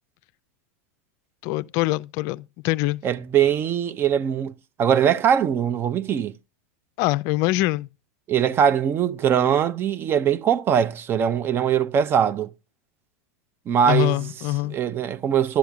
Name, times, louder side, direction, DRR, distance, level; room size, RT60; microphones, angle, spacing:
voice 1, 1.4-3.0 7.0-7.9 13.9-14.8, left 18 dB, 50° left, 0.4 m, -24 dB
voice 2, 3.0-4.5 4.8-6.3 8.3-12.5 13.7-14.2 14.7-15.6, right 8 dB, 30° right, 0.5 m, -21 dB
11.5 x 10.0 x 2.3 m
hypercardioid pair, 110°, 7 cm